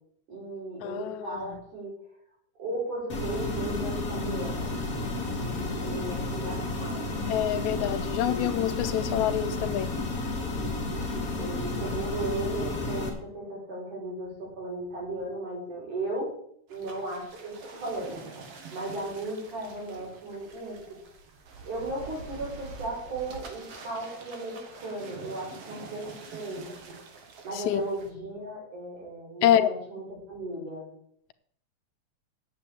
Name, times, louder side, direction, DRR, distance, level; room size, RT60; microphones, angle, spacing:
voice 1, 0.3-1.9 2.6-4.8 5.4-5.5 5.8-7.2 7.8-8.0 8.3-8.5 11.4-16.3 16.7-18.2 18.7-20.8 21.6-26.7 27.4-30.9, right 2 dB, 90° right, -3 dB, 7.3 m, -36 dB
voice 2, 0.8-1.6 7.3-9.9 27.5-27.9 29.4-29.7, left 11 dB, 80° left, 11 dB, 2.1 m, -26 dB
sound 1, 3.1-13.1, left 2 dB, 30° left, 2.7 m, -32 dB
sound 2, 16.7-28.1, right 4 dB, 55° right, 2.5 m, -46 dB
8.9 x 7.7 x 8.8 m, 0.66 s
omnidirectional pair, 3.4 m